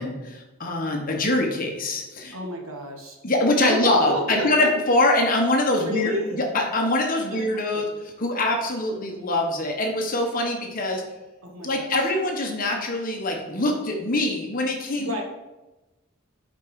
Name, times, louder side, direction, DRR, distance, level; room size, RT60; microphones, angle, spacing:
voice 1, 0.0-2.3 3.2-7.8 8.2-11.0 11.6-15.2, left 1 dB, 40° left, 1 dB, 1.1 m, -24 dB
voice 2, 2.3-3.2 3.6-4.7 5.8-6.4 7.3-7.5 7.7-7.8 11.4-12.1 14.9-15.2, equal, 85° right, 1 dB, 1.3 m, -30 dB
5.3 x 5.2 x 4.8 m, 1.1 s
head